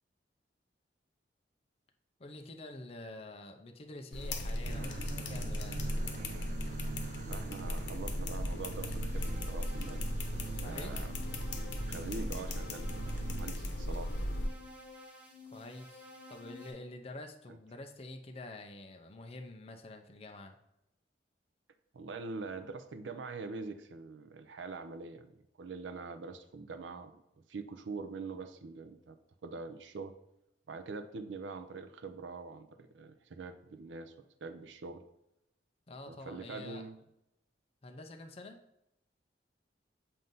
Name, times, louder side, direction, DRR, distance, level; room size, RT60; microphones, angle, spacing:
voice 1, 2.2-5.9 10.5-11.1 15.4-20.6 35.9-36.8 37.8-38.6, left 2 dB, 35° left, 4 dB, 0.5 m, -47 dB
sound 1, 4.1-14.5, left 1 dB, 85° left, 0.9 m, -37 dB
voice drone, 4.6-13.5, right 4 dB, 40° right, 0.3 m, -45 dB
voice 2, 7.3-10.1 10.6-11.1 11.6-14.1 17.5-17.6 21.9-27.2 27.5-29.2 29.4-30.1 30.7-34.1 34.4-35.0 36.1-37.0, right 4 dB, 90° right, 10 dB, 0.5 m, -44 dB
sound 2, 9.0-16.7, left 2 dB, 10° right, 0.9 m, -52 dB
7.7 x 2.7 x 5.3 m, 0.84 s
head